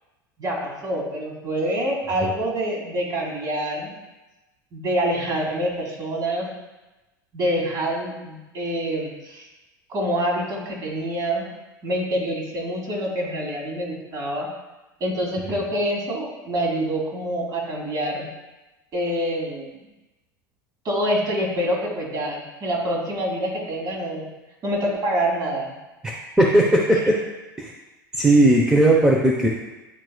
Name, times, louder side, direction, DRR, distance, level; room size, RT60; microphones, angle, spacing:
voice 1, 0.4-3.9 4.7-6.5 7.3-9.5 9.9-11.5 11.8-14.5 15.0-18.3 18.9-19.7 20.8-24.2 24.6-25.7, equal, 35° right, -1 dB, 2.1 m, -26 dB
voice 2, 26.0-27.2 27.6-27.7 28.1-29.5, right 1 dB, 5° right, -3 dB, 0.9 m, -17 dB
10.0 x 4.6 x 2.3 m, 1.1 s
figure-of-eight pair, 80°, 11 cm